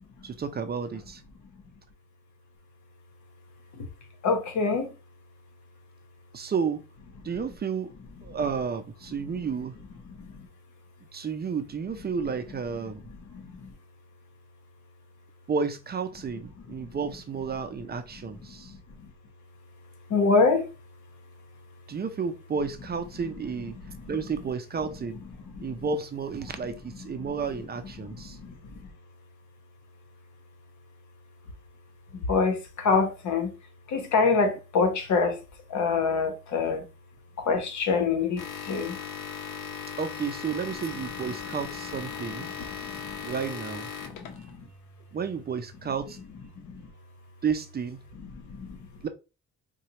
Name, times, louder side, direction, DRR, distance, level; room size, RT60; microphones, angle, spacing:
voice 1, 0.2-1.2 6.3-6.8 7.2-7.9 8.2-9.7 11.1-13.0 15.5-18.7 21.9-23.8 24.1-25.2 25.6-28.4 40.0-42.5 43.2-43.9 45.1-46.2 47.4-48.0 49.0-49.1, right 6 dB, 30° right, 0.5 m, -31 dB
voice 2, 4.2-4.9 7.3-7.4 10.0-10.5 12.8-13.7 16.7-17.0 18.2-19.1 20.1-20.7 23.1-23.2 23.7-24.2 25.2-25.3 25.5-25.8 26.6-27.4 28.0-28.9 32.1-33.5 33.9-35.4 35.7-36.8 37.4-39.0 42.4-43.3 44.0-44.7 46.6-46.9 48.1-48.9, left 4 dB, 70° left, 1.1 m, -27 dB
sound 1, 38.4-44.6, left 7 dB, 85° left, 0.8 m, -38 dB
4.1 x 2.3 x 2.9 m
cardioid pair, 90°, 30 cm